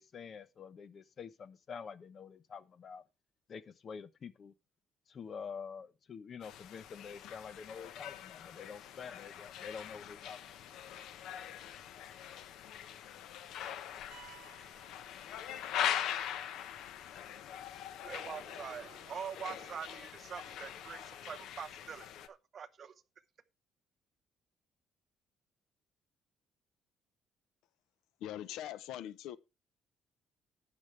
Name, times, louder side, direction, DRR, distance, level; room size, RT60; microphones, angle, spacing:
voice 1, 0.0-3.0 3.5-4.5 5.1-10.4, left 6 dB, 40° left, 0.9 m, -47 dB
sound 1, 6.4-22.3, left 10 dB, 75° left, 1.1 m, -42 dB
sound 2, 14.1-16.0, right 15 dB, 65° right, 1.4 m, -59 dB
voice 2, 18.0-22.9, right 7 dB, 40° right, 0.8 m, -44 dB
voice 3, 28.2-29.4, left 12 dB, 90° left, 0.7 m, -42 dB
12.0 x 9.1 x 3.3 m
cardioid pair, 145°, 0 cm